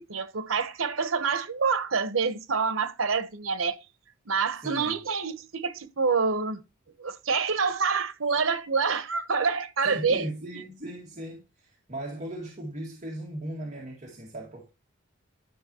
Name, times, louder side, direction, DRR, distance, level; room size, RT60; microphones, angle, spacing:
voice 1, 0.0-3.8 4.3-6.6 7.0-10.3, right 5 dB, 85° right, 1.0 m, -27 dB
voice 2, 4.6-4.9 9.8-14.7, right 1 dB, 40° right, 2.0 m, -38 dB
11.5 x 6.0 x 2.9 m
head